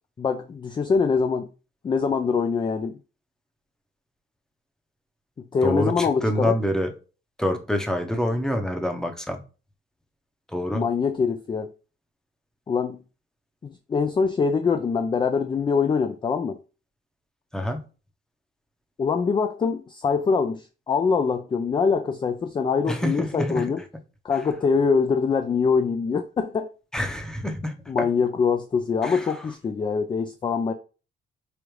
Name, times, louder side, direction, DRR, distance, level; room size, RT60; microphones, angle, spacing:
voice 1, 0.2-1.5 1.8-2.9 5.5-6.5 10.7-11.7 12.7-13.0 13.6-16.6 19.0-23.8 24.2-26.7 27.9-30.7, left 5 dB, 25° left, 0.3 m, -24 dB
voice 2, 5.6-6.9 7.4-9.4 10.5-10.8 17.5-17.8 22.9-23.7 26.9-28.1 29.0-29.3, equal, 5° left, 0.7 m, -26 dB
4.9 x 2.5 x 3.1 m
cardioid pair, 90°, 20 cm